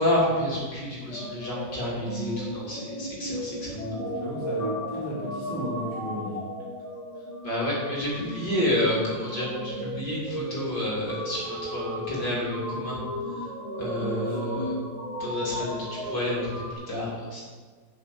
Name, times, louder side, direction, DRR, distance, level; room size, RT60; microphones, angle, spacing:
voice 1, 0.0-3.7 7.4-13.0 13.8-14.8 15.2-15.8 16.0-17.4, left 1 dB, 70° left, -6 dB, 3.9 m, -29 dB
sound 1, 1.1-16.7, equal, 20° left, 1.6 m, -35 dB
voice 2, 3.7-6.4 14.0-14.4, equal, 40° left, -7 dB, 3.2 m, -34 dB
9.5 x 5.7 x 8.4 m, 1.5 s
omnidirectional pair, 2.0 m